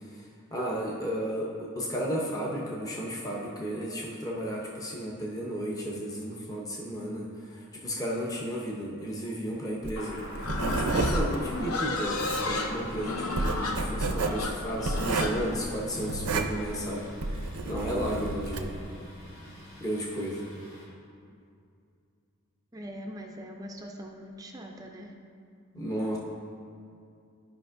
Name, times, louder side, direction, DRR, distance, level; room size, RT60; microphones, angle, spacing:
voice 1, 0.5-18.8 19.8-20.4 25.7-26.2, equal, 15° left, -3 dB, 0.7 m, -33 dB
Writing, 9.8-18.8, right 3 dB, 80° right, 0.6 m, -31 dB
Thunder, 10.0-20.9, left 1 dB, 65° left, 1.8 m, -44 dB
Livestock farm animals working animals, 10.4-16.5, left 2 dB, 80° left, 0.7 m, -33 dB
voice 2, 22.7-25.1, equal, 15° right, 1 dB, 0.4 m, -42 dB
13.0 x 5.1 x 2.6 m, 2.4 s
head